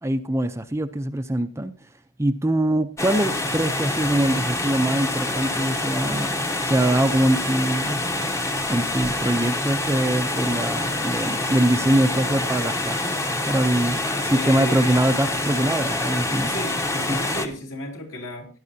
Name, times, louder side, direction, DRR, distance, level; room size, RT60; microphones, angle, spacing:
voice 1, 0.0-1.7 2.2-8.0 8.7-16.8 17.1-17.2, right 1 dB, 15° right, 8 dB, 0.5 m, -23 dB
sound 1, 3.0-17.5, left 2 dB, 15° left, 0.9 m, -26 dB
voice 2, 14.3-15.1 16.5-18.5, left 1 dB, 65° left, 1 dB, 3.4 m, -34 dB
17.0 x 10.5 x 2.7 m, 0.37 s
head